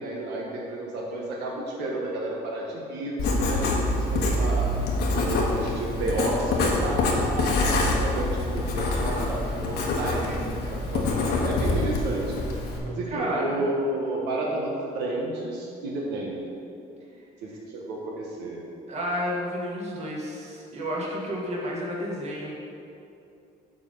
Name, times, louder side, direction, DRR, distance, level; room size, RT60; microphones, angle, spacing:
voice 1, 0.0-4.7 5.2-12.4 12.8-16.5 17.4-18.6, right 1 dB, 90° right, -2 dB, 1.2 m, -31 dB
Writing, 3.2-12.8, left 2 dB, 75° left, 1.3 m, -25 dB
voice 2, 13.1-13.6 18.9-22.5, equal, 40° right, -3 dB, 1.7 m, -31 dB
7.3 x 4.0 x 6.5 m, 2.6 s
cardioid pair, 110°, 17 cm